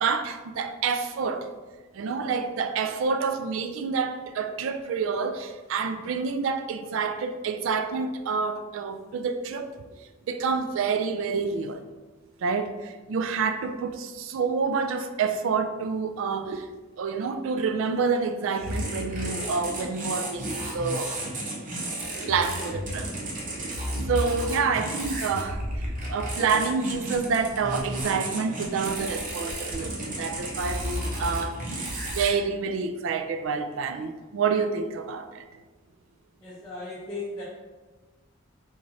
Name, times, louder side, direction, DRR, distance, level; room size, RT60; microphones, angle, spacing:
voice 1, 0.0-1.5 1.9-9.7 10.3-11.8 12.4-16.7 17.0-21.1 22.3-23.1 23.6-23.7 24.1-31.9 32.1-35.5, right 5 dB, 65° right, 8 dB, 0.3 m, -28 dB
sound 1, 18.6-32.3, right 1 dB, 40° right, 0.7 m, -32 dB
voice 2, 36.4-37.4, left 2 dB, 20° left, -9 dB, 0.6 m, -36 dB
3.6 x 3.1 x 2.6 m, 1.3 s
head